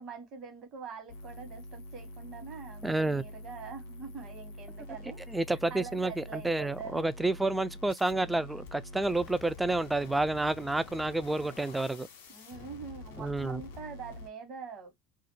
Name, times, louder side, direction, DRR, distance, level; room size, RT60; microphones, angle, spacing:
voice 1, 0.0-5.2 5.7-7.1 12.3-14.9, right 6 dB, 50° right, 1.1 m, -44 dB
sound 1, 1.1-14.3, left 2 dB, 85° left, 0.6 m, -46 dB
voice 2, 2.8-3.2 5.3-12.1 13.2-13.6, right 2 dB, 10° right, 0.3 m, -30 dB
2.4 x 2.1 x 2.9 m
hypercardioid pair, 75°, 0 cm